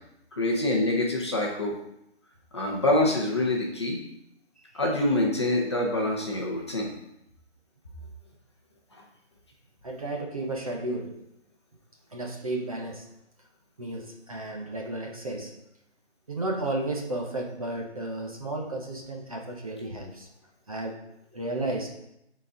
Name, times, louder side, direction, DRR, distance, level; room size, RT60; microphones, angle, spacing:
voice 1, 0.3-1.7 2.5-4.0 4.8-6.9, left 1 dB, 25° left, -2 dB, 0.8 m, -25 dB
voice 2, 9.8-11.2 12.1-13.1 13.8-15.5 16.3-20.3 20.7-21.0 21.3-21.9, right 2 dB, 30° right, 1 dB, 0.8 m, -33 dB
12.0 x 4.1 x 3.7 m, 0.83 s
figure-of-eight pair, 165°, 34 cm